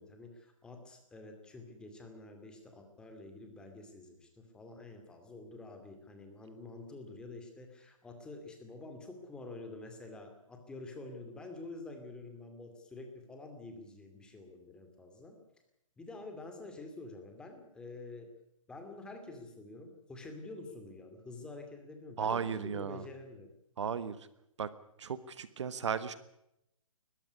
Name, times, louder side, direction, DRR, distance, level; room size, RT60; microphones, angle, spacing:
voice 1, 0.0-15.4 16.0-18.3 18.7-23.5, left 2 dB, 5° left, 4 dB, 2.4 m, -48 dB
voice 2, 22.2-23.0 23.8-24.3 24.6-24.7 25.0-26.1, right 7 dB, 55° right, 14 dB, 1.4 m, -35 dB
21.5 x 14.5 x 9.7 m, 0.82 s
hypercardioid pair, 165°, 18 cm